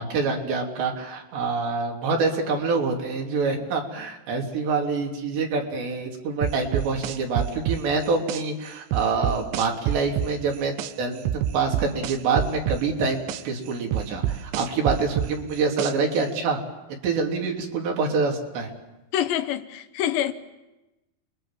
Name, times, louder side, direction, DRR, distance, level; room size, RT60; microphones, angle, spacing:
voice 1, 0.0-16.6 17.0-18.7, right 4 dB, 70° right, 5.1 m, -26 dB
sound 1, 6.4-8.4 8.9-10.9 11.3-13.4 13.9-16.2, right 11 dB, 90° right, 3.5 m, -26 dB
voice 2, 19.1-20.3, left 11 dB, 75° left, 3.1 m, -26 dB
29.5 x 22.5 x 7.5 m
omnidirectional pair, 5.3 m